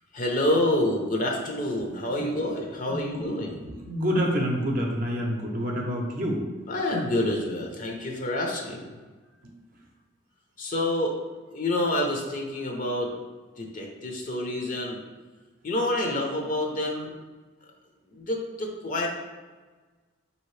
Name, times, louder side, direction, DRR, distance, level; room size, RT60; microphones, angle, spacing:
voice 1, 0.1-3.6 6.7-9.0 10.6-11.2 11.5-13.1 13.6-15.0 15.6-17.1 18.1-19.1, left 1 dB, 40° left, 0 dB, 0.6 m, -28 dB
voice 2, 2.8-3.2 3.6-6.5 9.4-9.6, equal, 45° right, -1 dB, 0.6 m, -28 dB
4.9 x 2.8 x 3.1 m, 1.3 s
head